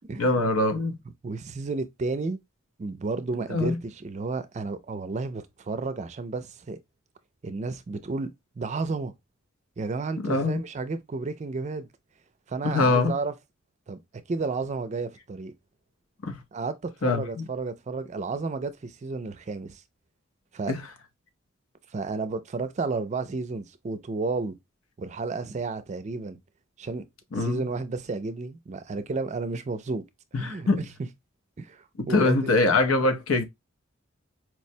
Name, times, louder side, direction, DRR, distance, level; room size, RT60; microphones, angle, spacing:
voice 1, 0.2-1.0 3.5-3.8 10.2-10.6 12.6-13.1 16.2-16.4 17.0-17.4 20.7-20.8 27.3-27.7 30.3-30.8 32.1-33.4, left 2 dB, 90° left, 0.7 m, -23 dB
voice 2, 1.2-2.4 2.8-6.8 7.4-8.3 8.6-9.1 9.8-11.9 12.5-13.3 13.9-14.0 14.3-15.5 16.5-19.8 20.5-20.7 21.9-24.6 25.0-26.4 26.8-27.0 27.4-30.0 30.3-30.9 31.6-32.5, right 3 dB, 35° right, 0.4 m, -32 dB
4.5 x 2.1 x 2.6 m
head